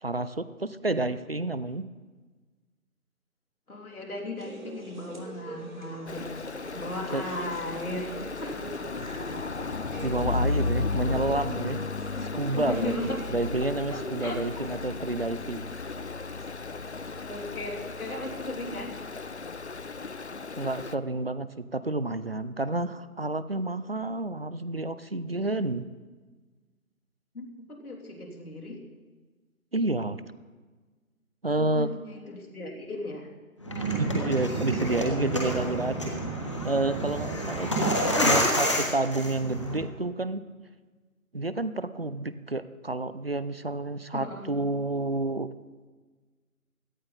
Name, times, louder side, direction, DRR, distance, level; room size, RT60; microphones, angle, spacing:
voice 1, 0.0-1.8 7.1-7.2 10.0-11.8 12.3-12.9 13.3-15.7 20.6-25.8 29.7-30.2 31.4-31.9 34.0-36.1 36.6-40.4 41.3-45.5, right 2 dB, 45° right, 14 dB, 0.5 m, -29 dB
voice 2, 3.7-6.3 6.7-8.8 12.2-12.3 12.5-13.3 13.9-14.7 17.3-19.0 27.3-28.8 31.5-33.3 38.1-38.5 44.1-44.5, left 1 dB, 85° left, -1 dB, 3.4 m, -36 dB
sound 1, 4.4-18.7, right 2 dB, 65° right, 4.3 m, -45 dB
Stream, 6.1-20.9, left 4 dB, 50° left, 0.6 m, -34 dB
sound 2, 33.6-39.8, equal, 20° left, 1.4 m, -28 dB
17.0 x 12.5 x 4.1 m, 1.4 s
figure-of-eight pair, 175°, 43 cm